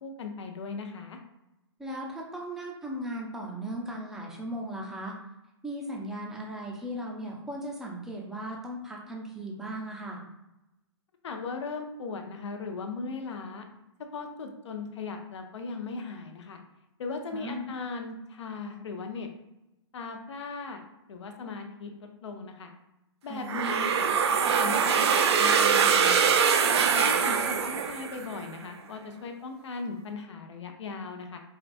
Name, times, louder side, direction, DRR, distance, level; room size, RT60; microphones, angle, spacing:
voice 1, 0.0-1.2 11.2-13.6 14.1-16.6 17.0-19.3 19.9-20.8 21.1-21.9 22.2-22.7 23.2-26.4 27.0-31.4, left 4 dB, 75° left, 4 dB, 0.7 m, -38 dB
voice 2, 1.8-5.1 5.6-10.2 17.3-17.7 23.3-23.7 26.9-27.1, right 1 dB, 5° right, -2 dB, 0.5 m, -37 dB
sound 1, 23.5-28.4, right 6 dB, 65° right, 0.4 m, -23 dB
4.6 x 2.3 x 2.5 m, 0.94 s
hypercardioid pair, 145°, 15 cm